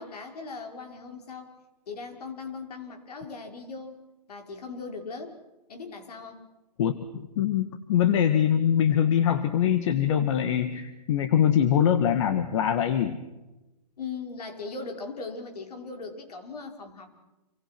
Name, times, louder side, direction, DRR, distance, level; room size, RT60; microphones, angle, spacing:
voice 1, 0.0-1.5 1.9-5.4 5.7-6.4 14.0-17.1, left 4 dB, 65° left, 4 dB, 5.6 m, -39 dB
voice 2, 6.8-13.2, left 9 dB, 45° left, 9 dB, 1.9 m, -23 dB
28.0 x 25.5 x 6.2 m, 1.1 s
hypercardioid pair, 140°, 21 cm